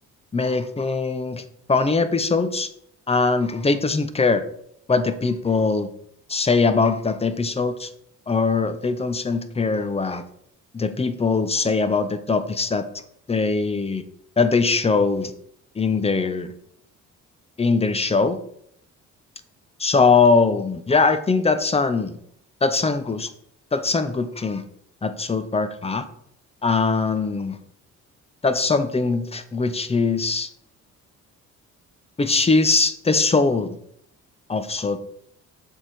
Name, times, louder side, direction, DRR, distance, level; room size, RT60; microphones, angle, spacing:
voice 1, 0.3-1.4 1.7-2.7 3.1-4.4 4.9-5.9 6.3-7.9 8.3-10.2 10.7-12.9 13.3-14.0 14.4-15.3 15.8-16.5 17.6-18.4 19.8-22.2 22.6-23.3 23.7-24.6 25.0-26.0 26.6-27.6 28.4-30.5 32.2-33.8 34.5-35.0, left 4 dB, 20° left, 11 dB, 0.8 m, -21 dB
7.1 x 4.7 x 5.2 m, 0.70 s
cardioid pair, 90°, 30 cm